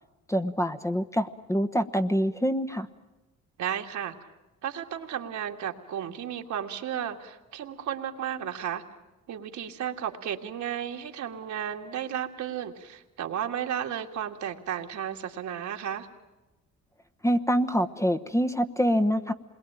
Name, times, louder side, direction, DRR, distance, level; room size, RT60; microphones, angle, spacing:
voice 1, 0.3-2.9 17.2-19.3, equal, 10° left, 8 dB, 1.1 m, -25 dB
voice 2, 3.6-4.3 4.6-8.8 9.3-16.1, right 9 dB, 70° right, 3 dB, 2.3 m, -33 dB
27.5 x 22.0 x 9.0 m, 1.1 s
cardioid pair, 90°, 30 cm